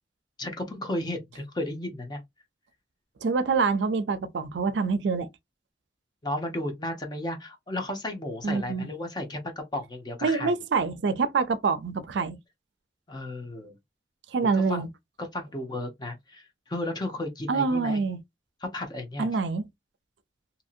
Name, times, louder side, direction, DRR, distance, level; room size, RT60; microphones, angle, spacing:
voice 1, 0.4-2.2 6.2-10.6 13.1-13.7 14.5-14.8 15.2-18.0 18.6-19.3, left 1 dB, 25° left, 0.7 m, -34 dB
voice 2, 3.2-5.3 8.4-8.9 10.2-12.4 14.3-14.9 17.5-18.2 19.2-19.6, right 4 dB, 80° right, 0.4 m, -26 dB
2.8 x 2.7 x 2.4 m
head